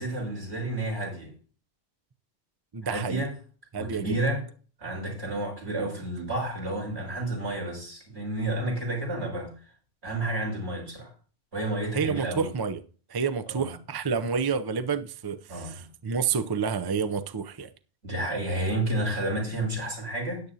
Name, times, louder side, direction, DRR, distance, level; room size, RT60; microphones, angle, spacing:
voice 1, 0.0-1.3 2.8-3.3 3.7-4.4 4.8-9.5 10.0-11.1 11.5-12.5 13.5-13.7 15.5-15.8 18.0-20.4, right 1 dB, 75° right, 6.5 m, -31 dB
voice 2, 2.7-3.2 3.7-4.2 11.9-12.8 13.1-17.7, right 6 dB, 30° right, 0.4 m, -29 dB
13.5 x 10.5 x 2.8 m
omnidirectional pair, 1.2 m